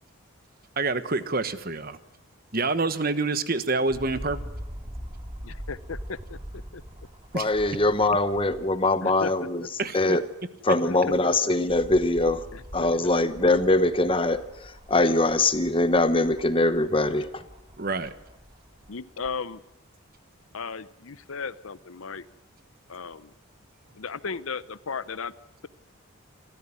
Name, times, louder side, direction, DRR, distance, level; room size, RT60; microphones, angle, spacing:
voice 1, 0.8-2.0 2.5-4.5 7.3-7.5 9.8-10.2 17.8-18.1, right 3 dB, 40° right, 1.2 m, -27 dB
sound 1, 3.9-8.9 9.4-9.5 10.8-19.4 20.1-20.2, equal, 25° right, 2.2 m, -43 dB
voice 2, 5.7-6.8 9.0-9.3 9.6-9.7 10.8-11.0 11.4-11.5 12.5-12.6 13.0-13.1 18.9-19.6 20.5-22.3 22.9-23.3 23.9-25.3, left 5 dB, 70° left, 0.8 m, -35 dB
voice 3, 7.3-9.6 9.9-10.2 10.6-12.5 12.7-17.4, left 2 dB, 25° left, 1.0 m, -23 dB
27.5 x 14.5 x 9.9 m
head